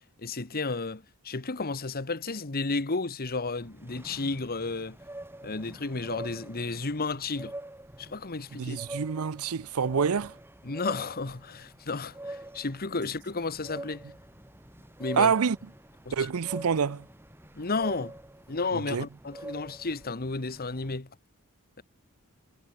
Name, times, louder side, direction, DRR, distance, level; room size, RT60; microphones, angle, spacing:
voice 1, 0.2-5.0 5.4-7.5 8.0-8.8 10.6-14.0 15.0-15.3 16.0-16.1 17.6-18.1 18.5-21.1, left 3 dB, 45° left, 1.4 m, -32 dB
sound 1, 3.5-21.0, right 1 dB, 10° right, 3.8 m, -45 dB
voice 2, 8.5-10.4 15.1-15.6 16.1-17.1 18.7-19.1, right 6 dB, 75° right, 0.6 m, -27 dB
head